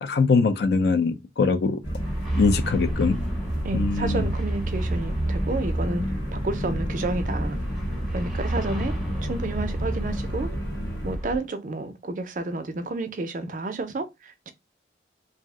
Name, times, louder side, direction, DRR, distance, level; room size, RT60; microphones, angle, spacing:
voice 1, 0.0-1.8 2.4-3.2 3.7-4.3, left 4 dB, 65° left, 0.4 m, -22 dB
sound 1, 1.8-11.2, equal, 90° left, 1.1 m, -31 dB
sound 2, 2.0-11.4, right 1 dB, ahead, 0.6 m, -30 dB
voice 2, 3.6-6.1 6.3-7.6 8.1-9.0 9.2-10.5 11.0-14.5, right 2 dB, 45° right, 0.4 m, -30 dB
2.6 x 2.0 x 3.6 m
head